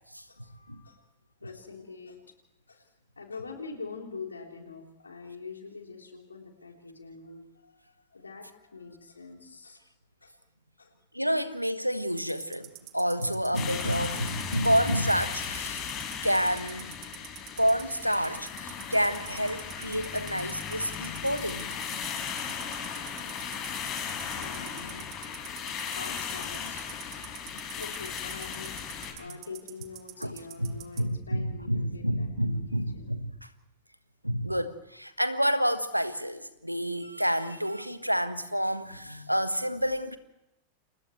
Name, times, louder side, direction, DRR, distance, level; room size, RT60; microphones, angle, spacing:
voice 1, 0.3-1.0 1.4-2.2 2.7-9.8 10.2-10.3 10.8-10.9 24.3-25.1 25.9-26.9 27.7-33.1, left 4 dB, 75° left, 3.8 m, -45 dB
voice 2, 11.1-15.8 16.2-16.9 17.6-21.7 30.2-30.3 30.6-33.5 34.2-40.2, equal, 90° right, 1.3 m, -29 dB
sound 1, 12.1-31.0, right 19 dB, 40° right, 1.9 m, -46 dB
sound 2, 13.5-29.1, left 7 dB, 35° left, 5.6 m, -36 dB
29.0 x 29.0 x 3.3 m
figure-of-eight pair, 90°, 0 cm